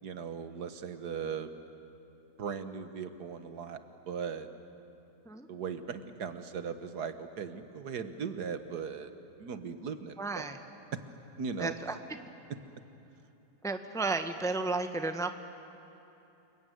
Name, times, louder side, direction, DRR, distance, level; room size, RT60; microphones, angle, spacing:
voice 1, 0.0-1.5 2.4-3.8 4.1-4.5 5.5-9.1 9.4-10.5 10.9-11.0 11.4-11.7, right 6 dB, 85° right, 9 dB, 1.8 m, -38 dB
voice 2, 10.2-10.6 11.6-12.0 13.6-15.3, right 3 dB, 5° left, 7 dB, 0.8 m, -33 dB
29.5 x 21.0 x 9.4 m, 2.9 s
omnidirectional pair, 1.7 m